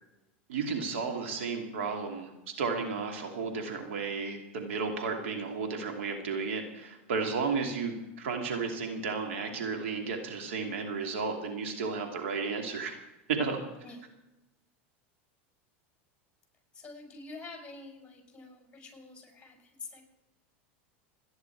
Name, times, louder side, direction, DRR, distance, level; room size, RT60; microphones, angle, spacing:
voice 1, 0.5-2.3 2.6-12.9 13.3-13.6, right 4 dB, 85° right, 3 dB, 2.7 m, -33 dB
voice 2, 16.7-20.0, left 3 dB, 15° left, 2 dB, 5.3 m, -47 dB
28.5 x 10.0 x 4.7 m, 0.98 s
supercardioid pair, 110°, 7 cm